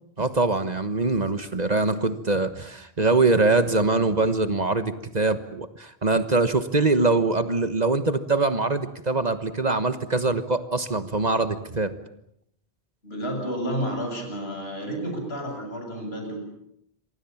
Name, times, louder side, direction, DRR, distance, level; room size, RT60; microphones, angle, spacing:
voice 1, 0.2-11.9, right 3 dB, 40° right, 10 dB, 1.4 m, -23 dB
voice 2, 13.0-16.4, equal, 70° left, 3 dB, 8.4 m, -31 dB
27.5 x 24.5 x 7.3 m, 0.74 s
omnidirectional pair, 1.1 m